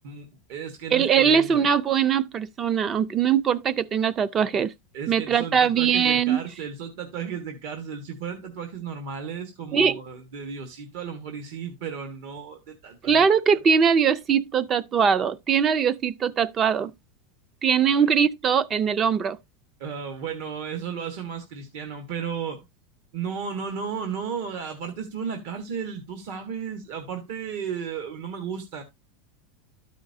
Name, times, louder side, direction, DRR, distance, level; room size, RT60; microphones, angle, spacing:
voice 1, 0.0-1.7 4.9-13.2 17.8-18.1 19.8-22.7 23.1-28.8, right 6 dB, 60° right, 1.3 m, -34 dB
voice 2, 0.9-4.7 5.1-6.4 9.7-10.0 13.0-16.9 17.6-19.4, right 7 dB, 25° right, 0.4 m, -21 dB
12.5 x 5.0 x 2.6 m
supercardioid pair, 155°, 0 cm